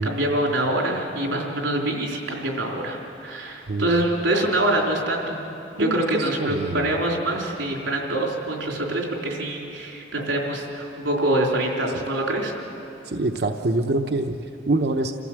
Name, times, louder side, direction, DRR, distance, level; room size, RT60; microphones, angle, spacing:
voice 1, 0.0-5.4 5.7-12.6, right 1 dB, 90° right, -1 dB, 4.0 m, -25 dB
voice 2, 5.8-6.9 13.0-15.1, right 2 dB, 60° right, 5 dB, 0.8 m, -25 dB
28.0 x 15.0 x 7.6 m, 2.8 s
head